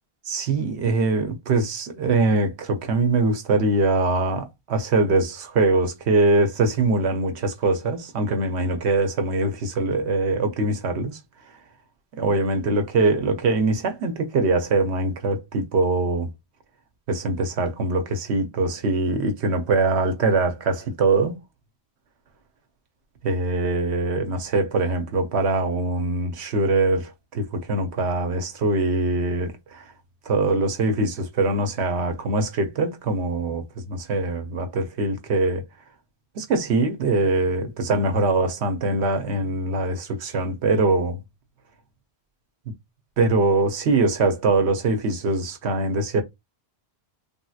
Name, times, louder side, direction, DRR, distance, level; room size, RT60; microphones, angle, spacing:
voice 1, 0.3-11.2 12.1-16.3 17.1-21.3 23.2-29.8 30.3-35.7 36.4-41.2 43.2-46.2, right 3 dB, 85° right, 1.0 m, -23 dB
3.4 x 2.8 x 2.3 m
omnidirectional pair, 1.1 m